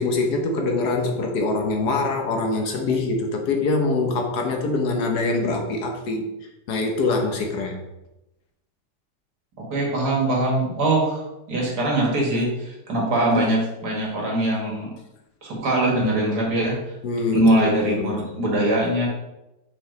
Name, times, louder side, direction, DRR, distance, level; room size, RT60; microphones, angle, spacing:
voice 1, 0.0-6.3 6.7-7.8 17.0-18.4, left 3 dB, 70° left, 2 dB, 1.5 m, -24 dB
voice 2, 9.6-14.9 15.4-16.7 17.3-19.1, right 1 dB, 65° right, -2 dB, 2.3 m, -22 dB
5.7 x 5.0 x 3.9 m, 0.93 s
omnidirectional pair, 1.9 m